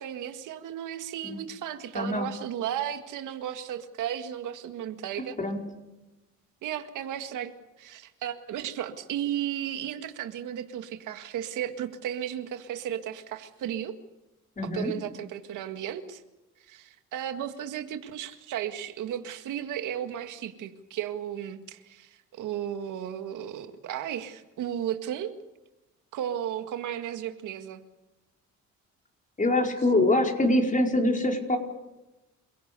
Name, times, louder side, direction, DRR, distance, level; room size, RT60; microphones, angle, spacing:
voice 1, 0.0-5.4 6.6-14.0 14.6-16.2 16.7-25.3 26.1-27.8, right 10 dB, 85° right, 8 dB, 1.9 m, -34 dB
voice 2, 1.9-2.3 5.4-5.6 14.6-14.9 29.4-31.6, left 1 dB, 25° left, 3 dB, 4.8 m, -24 dB
28.0 x 17.0 x 6.9 m, 1.0 s
cardioid pair, 90°, 30 cm